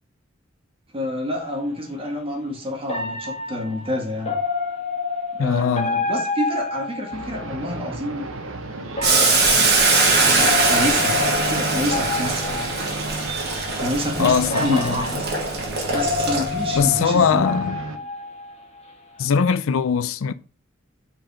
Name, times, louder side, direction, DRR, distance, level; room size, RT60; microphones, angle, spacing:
voice 1, 0.9-4.4 5.3-8.3 9.0-9.7 10.2-12.7 13.8-15.3 15.9-17.6, left 1 dB, 25° right, 1.8 m, -28 dB
sound 1, 1.4-1.5 2.9-7.6 8.9-13.1 13.9-14.0 14.5-18.9 19.2-19.5, left 4 dB, 30° left, 1.7 m, -29 dB
voice 2, 5.4-6.0 14.2-14.9 16.8-17.8 19.2-20.3, left 6 dB, 70° left, 0.4 m, -20 dB
sound 2, 7.1-18.0, right 2 dB, 70° right, 1.0 m, -33 dB
Boiling, 9.0-16.8, right 3 dB, 55° right, 2.5 m, -21 dB
5.7 x 5.1 x 5.0 m
head